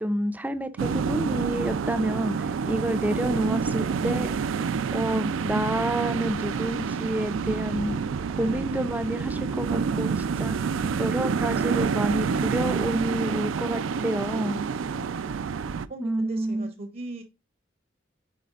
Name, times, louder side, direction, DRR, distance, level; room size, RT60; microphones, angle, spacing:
voice 1, 0.0-4.3 4.9-8.0 8.4-10.6 11.0-14.6 16.0-16.7, right 1 dB, 10° right, 0.4 m, -29 dB
sound 1, 0.8-15.9, right 6 dB, 80° right, 0.4 m, -28 dB
voice 2, 8.4-8.7 14.9-15.5 15.9-17.2, right 1 dB, 45° right, 0.7 m, -41 dB
9.2 x 4.2 x 2.4 m
head